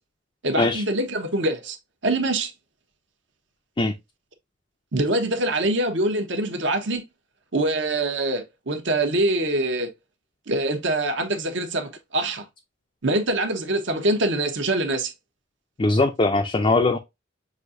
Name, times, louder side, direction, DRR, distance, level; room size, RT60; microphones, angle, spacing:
voice 1, 0.4-1.8 2.0-2.5 4.9-7.0 7.5-9.9 10.5-12.4 13.0-15.1, right 2 dB, 65° right, 1.0 m, -24 dB
voice 2, 15.8-17.0, left 2 dB, 25° left, 0.4 m, -20 dB
6.3 x 2.7 x 2.5 m
head